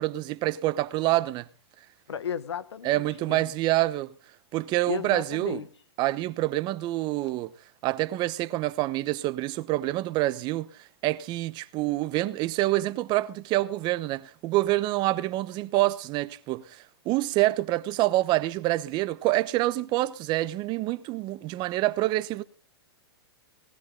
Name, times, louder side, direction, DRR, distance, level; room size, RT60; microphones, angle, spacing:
voice 1, 0.0-1.5 2.8-4.1 4.5-5.6 6.0-7.5 7.8-10.7 11.0-22.4, right 17 dB, 35° right, 1.0 m, -27 dB
voice 2, 2.1-3.4 4.9-5.7, left 8 dB, 90° left, 1.5 m, -34 dB
19.0 x 13.5 x 3.9 m
hypercardioid pair, 135°, 14 cm